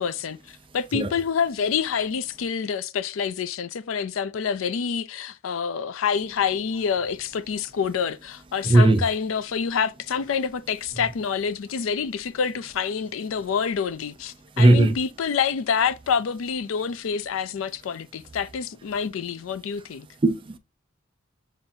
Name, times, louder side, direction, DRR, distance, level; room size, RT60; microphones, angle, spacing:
voice 1, 0.0-20.1, left 6 dB, 85° left, 0.4 m, -27 dB
voice 2, 8.6-9.0 14.6-14.9 20.2-20.6, right 2 dB, 25° right, 0.5 m, -17 dB
7.1 x 2.6 x 2.6 m
head